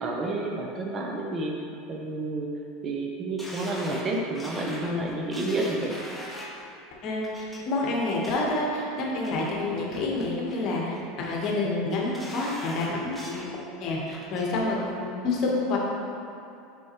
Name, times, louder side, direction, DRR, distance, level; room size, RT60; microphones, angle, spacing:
voice 1, 0.0-1.5 1.9-2.5 2.8-5.9, right 2 dB, 35° right, 0 dB, 0.8 m, -30 dB
sound 1, 3.4-6.6 7.2-7.6 8.0-8.6 9.0-9.5 9.9-10.6 10.9-11.5 11.9-13.5 13.9-14.5 14.9-15.0, equal, ahead, 1.0 m, -42 dB
voice 2, 7.0-13.5 13.8-15.8, left 2 dB, 50° left, -2 dB, 1.2 m, -28 dB
6.2 x 5.2 x 3.0 m, 2.6 s
hypercardioid pair, 95°, 0 cm